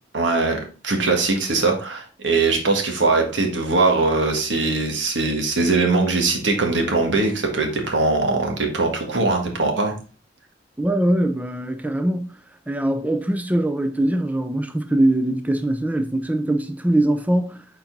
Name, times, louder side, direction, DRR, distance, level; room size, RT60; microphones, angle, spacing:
voice 1, 0.1-9.9, right 3 dB, 75° right, 1.6 m, -21 dB
voice 2, 10.8-12.4 12.7-17.6, right 1 dB, 10° right, 0.5 m, -22 dB
6.9 x 4.1 x 3.9 m
head